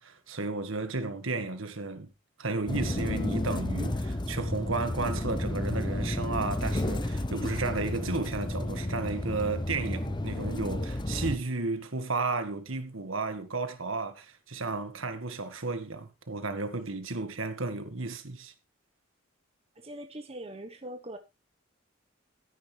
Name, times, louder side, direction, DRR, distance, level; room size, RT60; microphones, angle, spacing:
voice 1, 0.0-2.1 2.4-18.5, right 3 dB, 75° right, 1.7 m, -33 dB
sound 1, 2.7-11.4, left 1 dB, 20° left, 0.8 m, -32 dB
voice 2, 19.8-21.2, right 1 dB, 30° right, 1.1 m, -42 dB
13.0 x 10.0 x 3.3 m
head